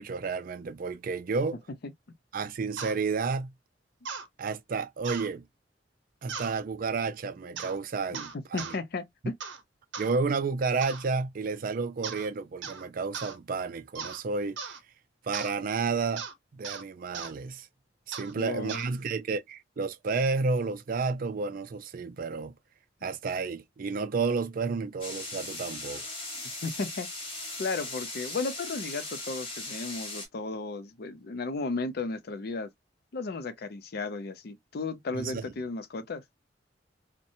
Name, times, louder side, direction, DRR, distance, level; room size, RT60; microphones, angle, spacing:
voice 1, 0.0-1.6 2.3-3.5 4.4-5.4 6.2-8.7 10.0-14.6 15.2-16.3 16.5-17.7 18.1-22.5 23.0-26.1 35.1-35.5, right 4 dB, 50° right, 0.4 m, -31 dB
sound 1, 2.8-3.0 4.1-4.3 5.0-5.3 6.3-6.6 7.6-7.8 8.1-8.8 9.4-9.6 9.9-10.1 10.8-11.1 12.0-12.3 12.6-12.8 13.1-13.4 14.0-14.2 14.6-14.8 15.3-15.5 16.2-16.3 16.6-16.8 17.1-17.3 18.1-18.3 18.7-18.9, right 6 dB, 90° right, 0.6 m, -38 dB
voice 2, 8.5-9.4 18.4-18.8 23.0-23.1 26.6-27.1 27.6-32.7 33.1-36.2, left 3 dB, 60° left, 0.5 m, -34 dB
sound 2, 25.0-30.3, left 2 dB, 30° left, 1.1 m, -38 dB
2.8 x 2.1 x 2.6 m
head